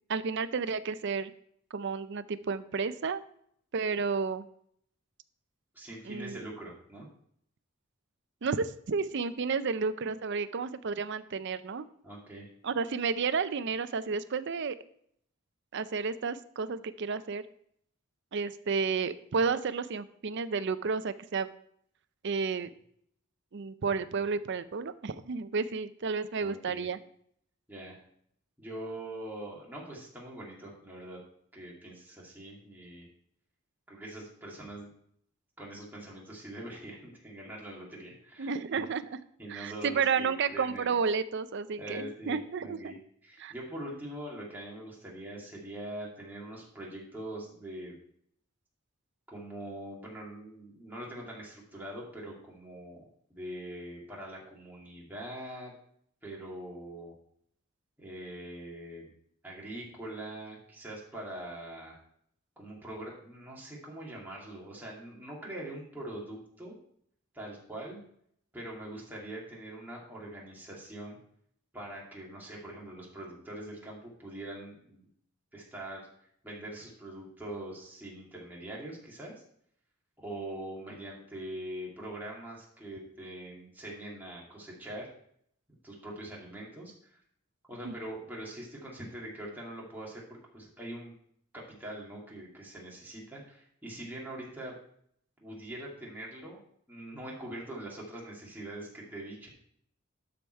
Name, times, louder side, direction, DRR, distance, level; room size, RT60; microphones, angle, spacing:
voice 1, 0.1-1.3 1.7-3.2 3.7-4.5 6.1-6.4 8.4-11.8 12.6-14.8 15.7-17.4 18.3-21.5 22.2-22.7 23.5-27.0 38.4-39.2 39.5-42.9 43.4-43.5 87.8-87.9, right 5 dB, 60° right, 13 dB, 0.5 m, -31 dB
voice 2, 5.7-7.1 12.0-12.5 26.4-26.9 27.7-28.0 28.6-31.2 31.5-33.1 33.9-34.9 35.6-38.9 39.4-41.0 41.8-43.0 43.2-47.9 49.3-55.7 56.2-57.1 58.0-59.1 59.4-62.0 62.6-66.8 67.3-68.0 68.5-71.2 71.7-75.1 75.5-76.1 76.4-79.3 80.2-85.1 85.8-87.2 87.7-91.1 91.5-94.7 95.4-96.6 96.9-99.5, right 1 dB, 10° right, -4 dB, 2.4 m, -43 dB
12.5 x 4.9 x 4.6 m, 0.67 s
head